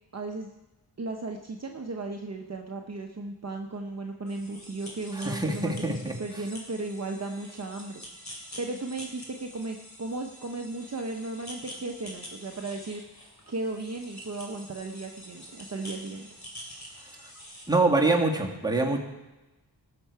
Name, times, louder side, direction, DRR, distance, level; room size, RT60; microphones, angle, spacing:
voice 1, 0.1-0.5 1.0-13.0 13.5-16.3, right 2 dB, 40° right, 3 dB, 0.8 m, -35 dB
sound 1, 4.3-17.7, equal, 40° left, 2.8 m, -46 dB
voice 2, 5.2-6.1 17.7-19.0, right 2 dB, 10° right, -1 dB, 1.8 m, -24 dB
18.0 x 6.8 x 4.7 m, 1.1 s
wide cardioid pair, 90°, 41 cm